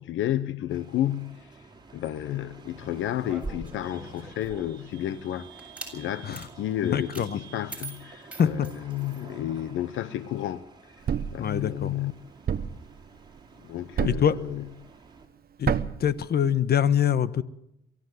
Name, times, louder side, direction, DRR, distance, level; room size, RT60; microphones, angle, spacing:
voice 1, 0.0-1.6 1.9-5.5 5.9-10.6 11.3-12.1 13.6-14.6, left 12 dB, 80° left, 0.9 m, -31 dB
sound 1, 0.7-15.3, right 4 dB, 20° right, 4.0 m, -50 dB
sound 2, 3.2-4.8 5.6-6.0 6.3-6.5 7.1-7.3 7.7-9.2, right 2 dB, 5° right, 7.8 m, -41 dB
voice 2, 6.8-7.4 8.4-8.7 9.2-9.3 11.4-12.0 14.0-14.3 15.6-15.7 16.0-17.4, left 9 dB, 55° left, 1.2 m, -24 dB
Thump thud, 11.1-11.4 12.5-12.8 14.0-14.4 15.6-16.1, right 8 dB, 50° right, 1.1 m, -27 dB
23.5 x 15.0 x 8.0 m
cardioid pair, 90°, 20 cm